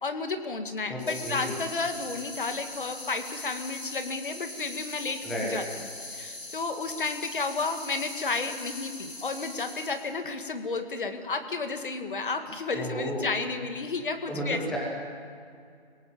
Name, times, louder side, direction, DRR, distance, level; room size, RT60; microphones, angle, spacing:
voice 1, 0.0-5.6 6.1-14.6, left 4 dB, 55° left, 7 dB, 2.1 m, -32 dB
voice 2, 0.9-1.5 5.2-5.5 12.7-13.2 14.3-14.8, equal, ahead, -4 dB, 1.2 m, -32 dB
sound 1, 1.0-10.2, left 2 dB, 85° left, 7.7 m, -41 dB
24.5 x 17.5 x 7.5 m, 2.3 s
figure-of-eight pair, 165°, 31 cm